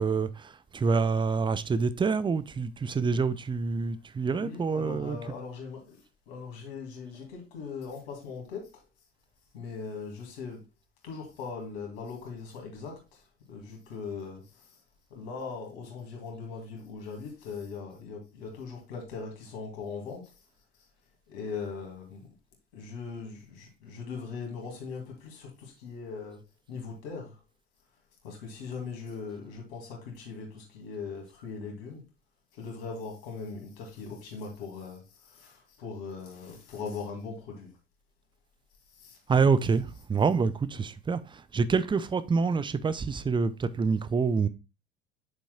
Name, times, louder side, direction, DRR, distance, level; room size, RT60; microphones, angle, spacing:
voice 1, 0.0-5.2 39.3-44.5, right 5 dB, 15° right, 0.5 m, -27 dB
voice 2, 4.3-8.8 9.5-10.6 11.0-14.8 15.1-20.3 20.8-20.9 21.3-22.3 22.7-26.4 26.7-27.4 28.2-32.0 32.5-37.7 38.9-39.2, left 5 dB, 65° left, 2.6 m, -40 dB
8.3 x 7.1 x 2.3 m
figure-of-eight pair, 60°, 32 cm